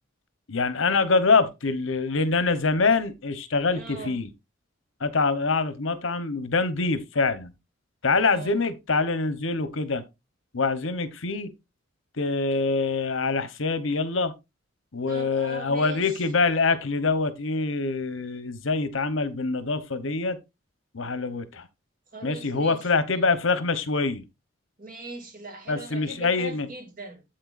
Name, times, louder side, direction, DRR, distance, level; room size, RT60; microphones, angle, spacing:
voice 1, 0.5-4.3 5.0-7.5 8.0-10.0 10.5-11.5 12.2-14.3 14.9-20.4 20.9-21.7 22.2-24.3 25.7-26.7, left 4 dB, 75° left, 1.0 m, -25 dB
voice 2, 3.7-4.2 8.3-8.6 15.1-16.2 22.1-22.9 24.8-27.2, right 2 dB, 40° right, 2.3 m, -40 dB
8.7 x 7.8 x 2.5 m
head